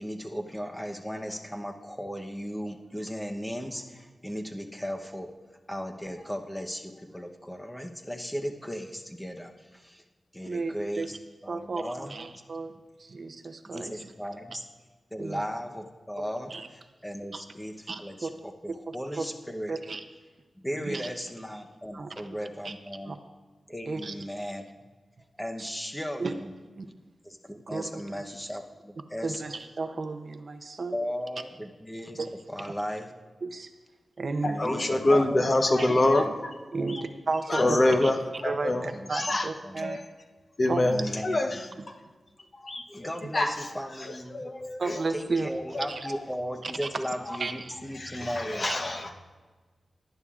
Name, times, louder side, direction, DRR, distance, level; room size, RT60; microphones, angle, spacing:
voice 1, 0.0-5.3 5.7-10.0 10.3-11.2 11.4-12.1 13.7-14.6 15.1-19.8 20.6-23.2 23.7-24.7 25.4-26.5 27.2-29.4 30.9-32.2 32.5-33.1 34.4-35.6 36.2-36.3 36.8-36.9 37.5-38.1 38.9-39.1 39.6-39.8 40.9-41.8 42.4-42.5 42.9-44.4 45.1-48.7, equal, 5° left, 4 dB, 0.8 m, -36 dB
voice 2, 10.4-11.1 11.5-12.7 13.0-14.1 15.2-15.4 16.5-16.7 17.3-17.4 17.9-18.3 18.9-19.2 19.7-20.0 20.7-21.1 21.9-22.3 22.6-22.7 23.1-23.2 23.9-24.1 26.2-26.3 26.7-26.9 27.7-28.0 29.2-31.0 32.2-32.3 33.4-33.7 34.2-34.7 35.1-35.2 35.8-35.9 36.7-40.0 40.7-40.8 41.8-41.9 44.8-45.5 45.9-46.1 46.6-46.9 47.4-47.8 48.6-49.1, right 3 dB, 45° right, 7 dB, 0.6 m, -33 dB
voice 3, 34.4-36.5 37.5-38.2 38.4-39.5 39.8-40.0 40.6-41.6 42.6-43.1 43.3-43.5 44.3-45.0 45.7-45.9 48.0-49.1, left 2 dB, 40° left, 4 dB, 0.9 m, -25 dB
18.0 x 11.0 x 2.4 m, 1.3 s
wide cardioid pair, 140°, 0 cm